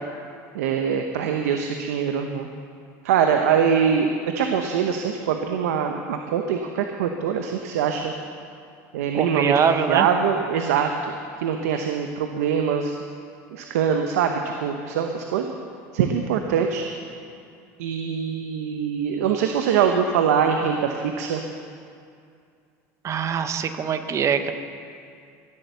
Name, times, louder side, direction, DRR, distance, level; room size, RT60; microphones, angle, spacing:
voice 1, 0.5-2.5 3.0-4.1 4.3-8.1 8.9-9.5 9.9-11.1 11.4-13.0 13.5-15.5 15.9-16.8 17.8-21.4, right 7 dB, 90° right, 4 dB, 0.9 m, -23 dB
voice 2, 9.1-10.1 23.0-24.5, right 7 dB, 40° right, 9 dB, 1.0 m, -23 dB
16.5 x 8.4 x 6.9 m, 2.4 s
supercardioid pair, 105°, 8 cm